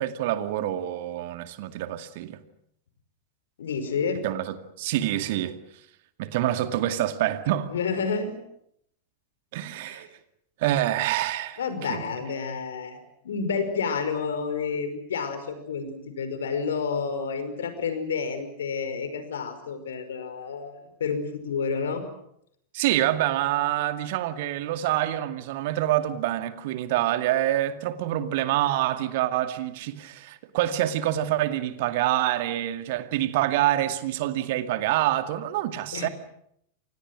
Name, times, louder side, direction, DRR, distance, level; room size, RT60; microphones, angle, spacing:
voice 1, 0.0-2.4 4.2-5.6 6.2-7.7 9.5-10.1 10.6-11.6 11.9-12.0 22.7-36.1, right 13 dB, 50° right, 2.2 m, -26 dB
voice 2, 3.6-4.2 7.7-8.4 9.8-10.0 11.6-22.0 35.9-36.1, left 5 dB, 65° left, 5.4 m, -30 dB
30.0 x 27.0 x 6.3 m
figure-of-eight pair, 90°, 0 cm